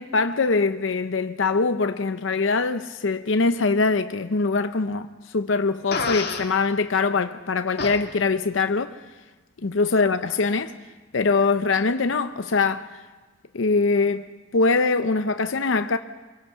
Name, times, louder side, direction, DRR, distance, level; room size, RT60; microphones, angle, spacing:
voice 1, 0.0-9.0 9.6-10.7 11.1-13.0 13.5-16.0, left 4 dB, 75° left, 0.7 m, -23 dB
Fart, 5.9-6.5 7.8-8.0, left 4 dB, 55° left, 2.0 m, -27 dB
24.5 x 23.5 x 5.7 m
head